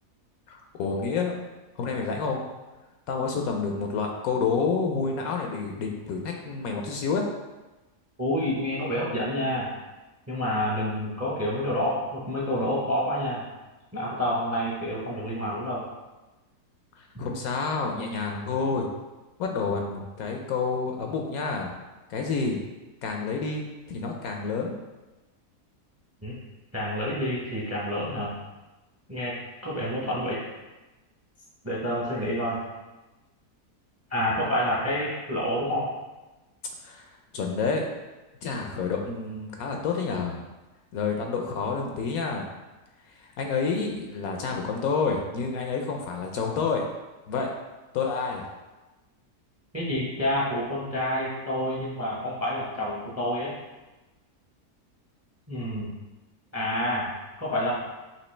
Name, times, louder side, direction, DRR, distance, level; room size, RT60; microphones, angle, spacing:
voice 1, 0.5-1.4 1.8-2.4 3.1-7.2 17.2-18.9 19.4-21.7 22.1-22.6 23.0-24.7 36.8-37.0 37.3-37.9 38.4-40.5 40.9-42.5 43.4-46.9 47.3-47.5 47.9-48.4, left 4 dB, 70° left, 2 dB, 1.0 m, -29 dB
voice 2, 8.2-9.7 10.3-13.4 13.9-15.8 17.1-17.3 26.2-26.3 26.7-28.3 29.1-29.4 29.6-30.4 31.6-32.6 34.1-35.9 49.7-53.5 55.5-55.9 56.5-57.7, equal, 15° right, -5 dB, 0.5 m, -28 dB
5.9 x 2.7 x 3.2 m, 1.1 s
omnidirectional pair, 1.7 m